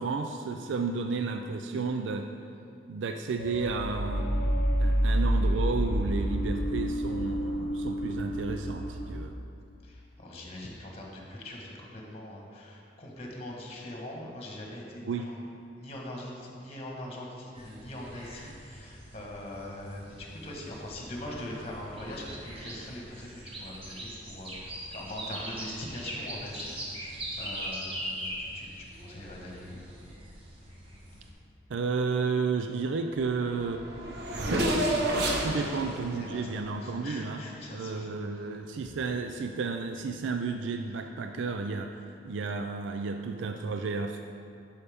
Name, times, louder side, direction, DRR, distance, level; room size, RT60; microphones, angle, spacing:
voice 1, 0.0-2.3 2.9-4.3 4.8-9.3 15.0-15.3 31.7-33.8 35.4-37.4 37.7-41.9 42.2-44.2, right 4 dB, 80° right, 5 dB, 0.4 m, -32 dB
sound 1, 3.4-9.1, equal, 50° left, 0.9 m, -28 dB
voice 2, 9.8-15.3 15.8-23.3 23.6-29.8 35.5-35.9 36.2-38.1, left 1 dB, 35° left, -2 dB, 1.4 m, -42 dB
sound 2, 17.5-31.3, right 1 dB, 30° right, 1.3 m, -41 dB
Race car auto racing / Accelerating revving vroom, 33.2-33.3 33.5-37.5, right 1 dB, 65° right, 1.0 m, -30 dB
11.0 x 5.5 x 3.5 m, 2.5 s
head